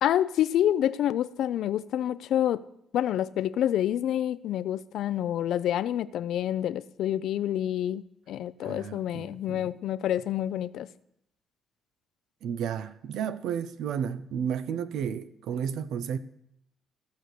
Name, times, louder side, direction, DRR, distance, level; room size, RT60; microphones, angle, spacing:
voice 1, 0.0-2.6 2.9-10.9, left 11 dB, 80° left, 0.4 m, -28 dB
voice 2, 8.6-9.7 12.4-16.2, right 8 dB, 80° right, 0.7 m, -32 dB
15.0 x 6.3 x 6.7 m
cardioid pair, 90°, 0 cm